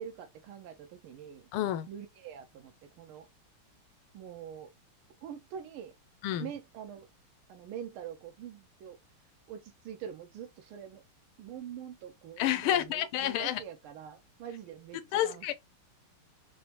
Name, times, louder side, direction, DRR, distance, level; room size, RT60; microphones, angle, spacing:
voice 1, 0.0-1.5 1.9-3.3 4.1-4.7 5.2-5.9 6.4-7.1 7.5-9.0 9.5-11.0 11.4-15.5, right 9 dB, 85° right, 1.6 m, -44 dB
voice 2, 1.5-1.9 6.2-6.5 12.4-13.6 15.1-15.5, left 12 dB, 85° left, 1.5 m, -29 dB
4.8 x 2.1 x 2.8 m
omnidirectional pair, 2.3 m